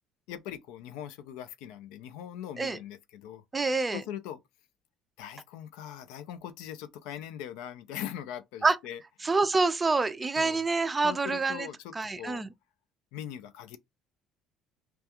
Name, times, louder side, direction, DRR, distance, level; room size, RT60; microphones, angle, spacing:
voice 1, 0.3-3.4 3.9-4.4 5.2-9.0 10.4-10.6 11.0-12.4 13.1-13.8, left 10 dB, 85° left, 0.3 m, -41 dB
voice 2, 3.5-4.0 8.6-8.8 9.2-11.7 11.9-12.5, right 3 dB, 20° right, 0.3 m, -26 dB
2.3 x 2.3 x 2.8 m
supercardioid pair, 100°, 0 cm